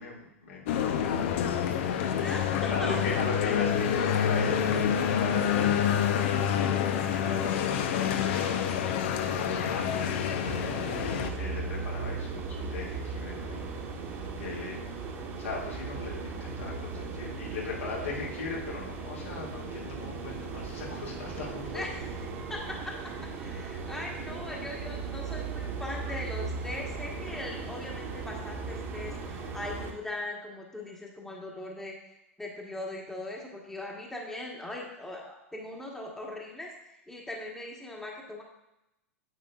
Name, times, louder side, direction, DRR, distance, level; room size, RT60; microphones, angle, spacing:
voice 1, 0.0-2.2 2.7-6.4 7.0-11.0 11.4-13.7 14.3-14.8 15.4-22.0, left 4 dB, 70° left, -4 dB, 2.3 m, -38 dB
sound 1, 0.7-11.3, left 8 dB, 55° left, 0.8 m, -27 dB
voice 2, 2.1-3.0 11.4-11.7 21.7-22.0 22.5-23.0 23.4-32.1 32.4-36.7 37.1-38.4, left 1 dB, 5° left, -1 dB, 1.3 m, -40 dB
sound 2, 10.4-29.9, right 4 dB, 35° right, 1.4 m, -37 dB
9.1 x 8.1 x 2.4 m, 0.88 s
figure-of-eight pair, 90°, 8 cm